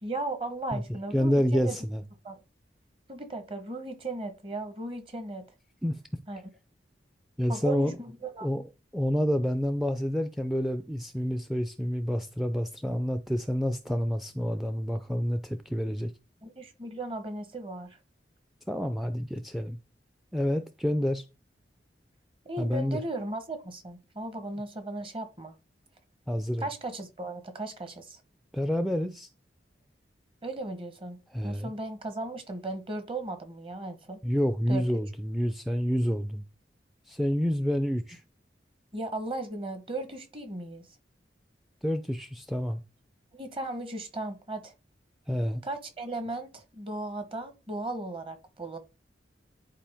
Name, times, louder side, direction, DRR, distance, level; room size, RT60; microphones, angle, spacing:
voice 1, 0.0-1.8 2.2-2.4 3.1-5.4 6.3-6.4 7.5-8.5 16.4-18.0 22.4-25.5 26.6-28.2 30.4-31.2 31.4-34.2 34.7-34.8 38.9-40.9 43.3-44.7 45.6-48.8, right 2 dB, 30° right, 1.2 m, -36 dB
voice 2, 1.1-2.0 5.8-6.0 7.4-8.0 8.4-8.6 8.9-16.1 18.7-19.8 20.3-21.2 22.6-23.0 26.3-26.7 28.5-29.3 31.3-31.7 34.2-36.4 37.1-38.2 41.8-42.8 45.3-45.6, equal, ahead, 0.4 m, -28 dB
10.5 x 4.5 x 3.5 m
head